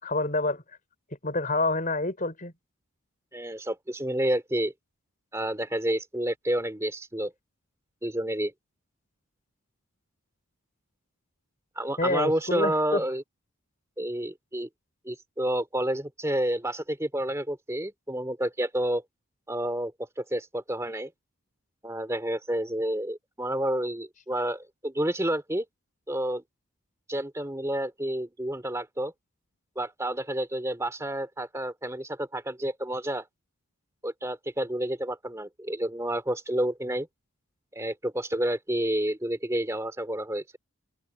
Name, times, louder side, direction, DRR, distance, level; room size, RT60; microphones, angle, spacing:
voice 1, 0.0-0.6 1.2-2.5 12.0-13.0, left 2 dB, 35° left, 5.2 m, -27 dB
voice 2, 3.3-4.7 5.3-7.3 8.0-8.5 11.8-13.2 14.0-14.7 15.0-19.0 19.5-19.9 20.2-21.1 21.8-25.7 26.1-26.4 27.1-29.1 29.8-33.2 34.0-37.1 37.7-40.6, right 1 dB, 15° right, 2.4 m, -29 dB
open air
head